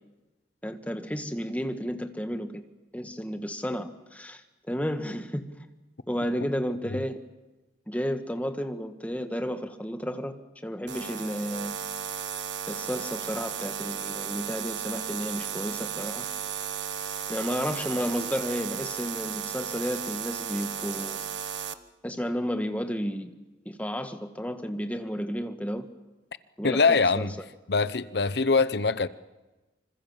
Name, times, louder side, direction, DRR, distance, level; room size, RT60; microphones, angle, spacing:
voice 1, 0.6-2.6 2.9-5.7 6.1-7.2 7.9-10.4 10.6-11.7 12.7-16.3 17.3-21.2 22.0-23.3 23.6-25.9 26.6-27.3, equal, 10° left, 1.5 m, -32 dB
sound 1, 10.9-21.7, right 8 dB, 85° right, 1.3 m, -34 dB
voice 2, 26.6-27.3 27.7-29.1, left 4 dB, 65° left, 0.9 m, -23 dB
26.0 x 26.0 x 7.4 m
head